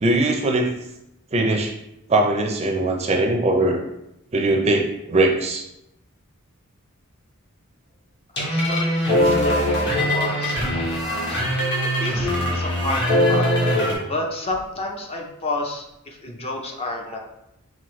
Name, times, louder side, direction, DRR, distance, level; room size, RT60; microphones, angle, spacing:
voice 1, 0.0-0.7 1.3-1.7 2.1-3.8 4.3-5.6, right 2 dB, 30° right, 3 dB, 0.5 m, -20 dB
voice 2, 8.3-11.6 12.0-13.6 14.1-17.2, left 2 dB, 30° left, 1 dB, 0.5 m, -31 dB
sound 1, 8.4-13.9, equal, 50° left, 1.3 m, -21 dB
5.6 x 2.6 x 3.1 m, 0.83 s
head